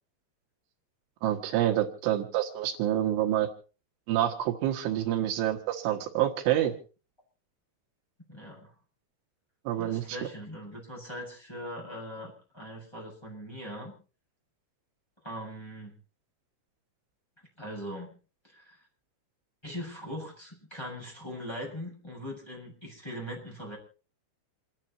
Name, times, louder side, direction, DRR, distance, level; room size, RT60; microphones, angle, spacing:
voice 1, 1.2-3.5 4.1-6.7 9.7-10.2, right 12 dB, 80° right, 4 dB, 4.0 m, -27 dB
voice 2, 8.3-8.7 9.8-13.9 15.2-15.9 17.6-18.1 18.4-18.8 19.6-23.8, equal, 5° left, -3 dB, 7.2 m, -40 dB
28.0 x 10.5 x 4.4 m, 0.36 s
omnidirectional pair, 5.5 m